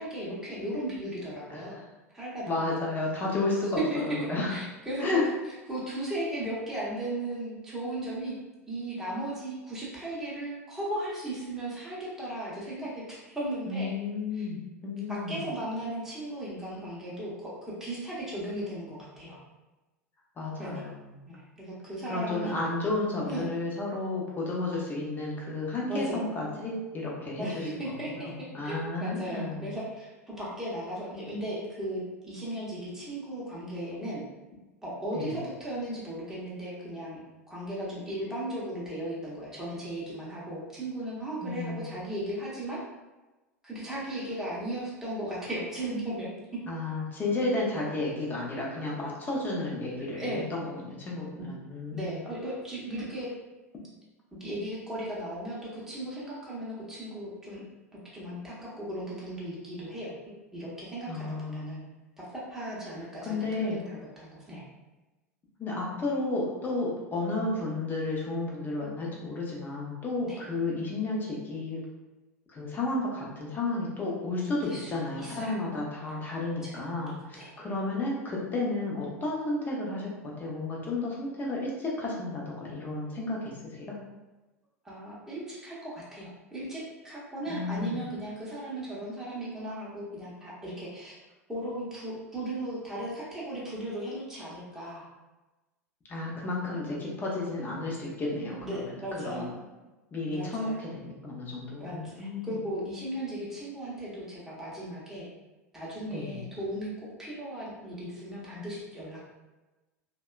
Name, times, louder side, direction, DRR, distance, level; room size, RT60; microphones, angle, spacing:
voice 1, 0.0-1.8 2.1-2.6 3.8-5.2 5.7-8.3 8.7-13.9 14.3-14.5 15.1-19.4 20.6-20.8 21.3-22.5 23.3-23.5 25.9-26.3 27.4-34.2 34.8-37.2 37.5-42.8 43.6-46.6 50.2-50.5 51.4-51.5 51.9-53.3 54.4-57.6 57.9-61.8 62.2-64.6 70.2-70.4 74.6-74.9 75.2-75.6 76.6-76.7 77.3-77.5 84.8-91.1 91.5-95.0 98.6-99.4 100.3-100.8 101.8-105.3 105.7-109.2, right 1 dB, 5° right, -7 dB, 0.8 m, -36 dB
voice 2, 1.5-1.8 2.5-4.5 5.0-5.2 13.7-15.5 20.4-21.2 22.1-29.7 35.1-35.3 41.4-41.9 46.7-52.2 61.1-61.8 63.2-63.8 65.6-71.8 72.5-84.0 87.5-88.0 96.1-99.5 100.1-102.5 106.1-106.4, left 2 dB, 20° left, -3 dB, 0.7 m, -32 dB
2.8 x 2.2 x 2.3 m, 1.1 s
figure-of-eight pair, 80°, 8 cm